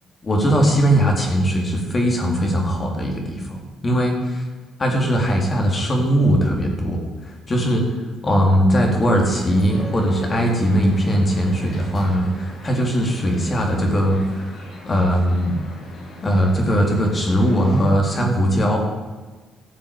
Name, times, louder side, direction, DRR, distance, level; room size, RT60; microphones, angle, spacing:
voice 1, 0.2-3.6 3.8-4.4 4.8-7.8 8.2-15.6 16.2-18.8, equal, 30° left, 1 dB, 3.8 m, -19 dB
sound 1, 8.9-17.8, equal, 60° left, 5.2 m, -40 dB
14.5 x 7.4 x 8.7 m, 1.3 s
cardioid pair, 90°, 0 cm